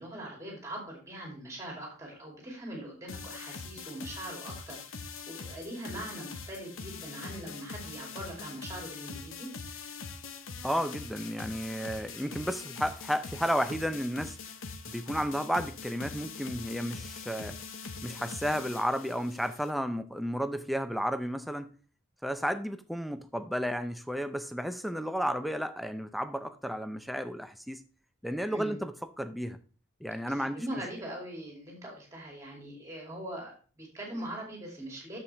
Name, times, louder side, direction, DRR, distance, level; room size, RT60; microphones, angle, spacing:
voice 1, 0.0-9.5 28.5-28.8 30.3-35.2, right 1 dB, 15° right, 2.9 m, -42 dB
sound 1, 3.1-19.7, left 4 dB, 90° left, 1.0 m, -43 dB
voice 2, 10.6-14.4 14.9-17.6 18.0-21.7 22.2-27.8 28.2-29.6 30.0-30.8, equal, ahead, 0.5 m, -32 dB
8.4 x 7.2 x 3.3 m
head